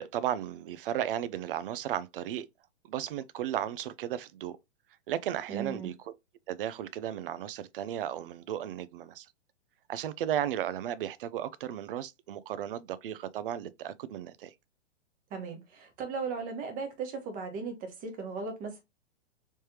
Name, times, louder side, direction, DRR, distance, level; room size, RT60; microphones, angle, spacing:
voice 1, 0.0-2.5 2.9-4.6 5.1-6.1 6.5-9.3 9.9-14.5, right 11 dB, 50° right, 0.4 m, -35 dB
voice 2, 5.5-5.9 15.3-18.8, right 5 dB, 25° right, 1.1 m, -37 dB
3.2 x 3.2 x 2.8 m
hypercardioid pair, 135°, 35 cm